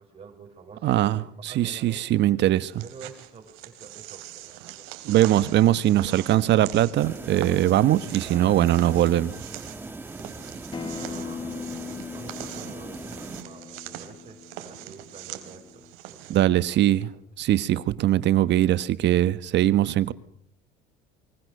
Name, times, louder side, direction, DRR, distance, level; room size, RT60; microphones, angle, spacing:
voice 1, 0.0-2.1 2.8-4.9 5.9-6.7 8.2-8.7 10.9-11.7 12.0-17.3, right 5 dB, 30° right, 6.1 m, -47 dB
voice 2, 0.8-2.8 5.0-9.4 16.3-17.1 17.4-20.1, right 13 dB, 60° right, 1.4 m, -21 dB
sound 1, 2.6-16.4, right 14 dB, 80° right, 3.7 m, -42 dB
sound 2, 7.0-13.4, right 2 dB, 10° right, 1.5 m, -40 dB
Acoustic guitar, 10.7-15.9, left 6 dB, 25° left, 1.5 m, -40 dB
29.0 x 24.0 x 6.7 m
cardioid pair, 105°, 21 cm